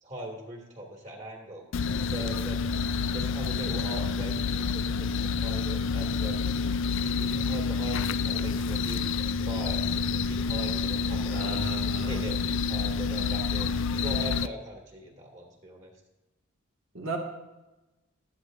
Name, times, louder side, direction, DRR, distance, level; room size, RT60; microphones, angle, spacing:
voice 1, 0.0-1.7 2.1-2.8 3.1-6.5 6.9-11.7 12.1-13.7 14.0-15.9, right 1 dB, 35° right, 0 dB, 2.2 m, -40 dB
sound 1, 1.7-14.5, left 5 dB, 60° left, 0.4 m, -28 dB
voice 2, 11.3-12.2 16.9-17.2, right 3 dB, 65° right, 1 dB, 1.9 m, -35 dB
16.0 x 12.0 x 2.6 m, 1.1 s
head